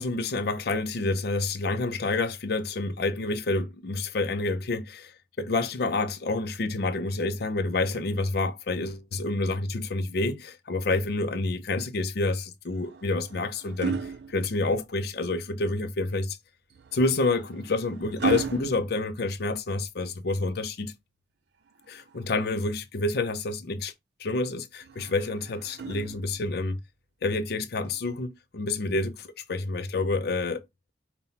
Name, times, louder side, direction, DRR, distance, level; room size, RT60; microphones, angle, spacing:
voice 1, 0.0-16.4 16.9-20.9 21.9-23.9 24.2-26.8 27.2-30.6, left 3 dB, 60° left, 0.5 m, -28 dB
sound 1, 12.7-15.1 16.7-19.9 21.7-22.8 24.8-26.6 27.9-28.1, right 5 dB, 70° right, 0.5 m, -37 dB
5.6 x 2.2 x 4.0 m
head